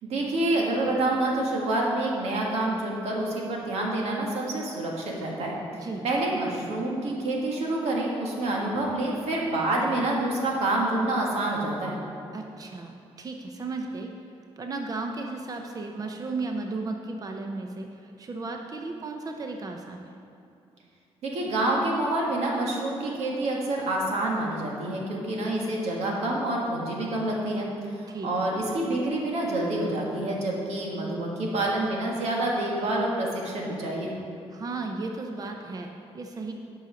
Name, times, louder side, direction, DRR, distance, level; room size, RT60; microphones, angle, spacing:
voice 1, 0.0-12.0 21.2-27.7 27.9-34.2, right 1 dB, 90° right, -2 dB, 1.6 m, -27 dB
voice 2, 12.3-14.1 14.6-20.2 28.1-28.5 34.5-35.9 36.1-36.5, right 3 dB, 35° right, 3 dB, 0.6 m, -35 dB
10.0 x 5.6 x 5.0 m, 2.6 s
cardioid pair, 105°, 11 cm